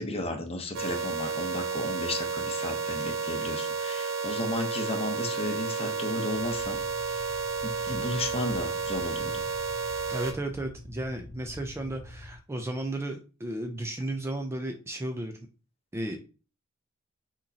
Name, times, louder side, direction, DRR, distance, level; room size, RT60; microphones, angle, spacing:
voice 1, 0.0-6.8 7.1-7.2 7.6-9.4, left 2 dB, 30° left, 5 dB, 0.8 m, -34 dB
sound 1, 0.7-10.3, right 5 dB, 65° right, 0.6 m, -32 dB
sound 2, 6.3-12.4, left 1 dB, 45° right, 1.3 m, -46 dB
voice 2, 10.1-15.4 15.9-16.2, right 1 dB, 10° right, 5 dB, 0.4 m, -34 dB
6.3 x 3.0 x 2.7 m, 0.34 s
head